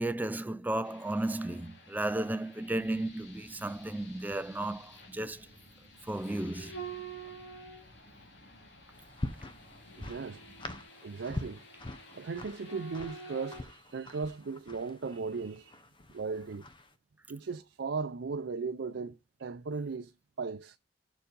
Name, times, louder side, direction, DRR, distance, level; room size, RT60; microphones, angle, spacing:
voice 1, 0.0-5.5 6.1-6.8, right 1 dB, 10° right, 0.4 m, -34 dB
sound 1, 0.8-13.6, right 3 dB, 75° left, 2.4 m, -50 dB
sound 2, 2.6-10.8, equal, 55° left, 2.5 m, -58 dB
sound 3, 8.9-16.9, left 1 dB, 30° left, 1.0 m, -44 dB
voice 2, 9.9-10.4 11.0-11.6 12.1-15.8 16.1-16.7 17.3-20.1 20.4-20.8, right 4 dB, 90° right, 0.5 m, -37 dB
7.0 x 4.9 x 5.3 m
head